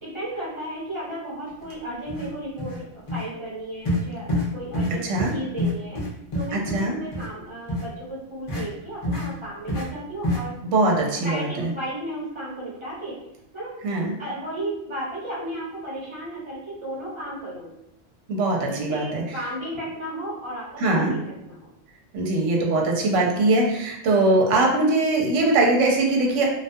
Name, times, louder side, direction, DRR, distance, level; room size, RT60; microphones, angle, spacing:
voice 1, 0.0-5.0 5.3-6.0 6.3-10.5 11.0-13.2 13.5-13.7 14.0-17.7 18.6-21.2 21.4-21.7, right 1 dB, 25° right, -8 dB, 0.9 m, -34 dB
sound 1, 1.6-1.7 2.1-2.3 2.6-2.8 3.1-3.2 3.8-4.0 4.3-4.5 4.7-4.9 5.2-5.3 5.6-6.8 7.1-7.3 7.7-7.8 8.5-8.6 9.0-9.3 9.7-9.8 10.2-10.4, left 1 dB, 35° left, 0.5 m, -26 dB
voice 2, 5.0-5.3 6.5-7.0 10.6-11.7 13.8-14.2 18.3-19.2 20.8-21.2 22.1-26.5, right 2 dB, 75° right, -1 dB, 0.9 m, -21 dB
2.3 x 2.2 x 2.6 m, 0.80 s
omnidirectional pair, 1.3 m